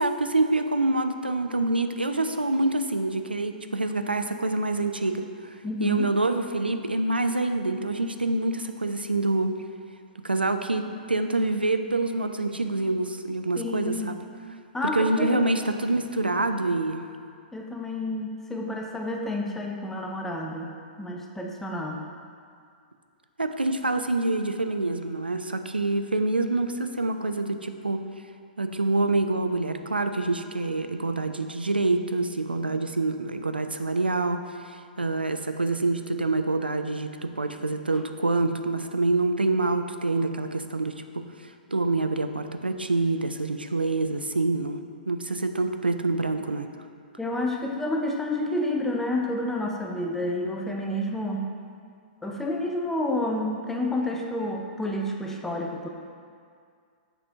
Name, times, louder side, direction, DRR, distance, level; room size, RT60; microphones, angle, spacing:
voice 1, 0.0-9.5 10.2-14.2 14.9-17.0 23.4-28.0 28.6-44.8 45.1-46.7, right 2 dB, 85° right, 7 dB, 0.4 m, -26 dB
voice 2, 5.6-6.1 13.6-14.1 14.7-15.5 17.5-20.7 21.0-22.0 47.2-51.5 52.2-55.9, left 1 dB, 5° left, 0 dB, 0.4 m, -29 dB
6.8 x 4.3 x 3.5 m, 2.2 s
figure-of-eight pair, 115°, 5 cm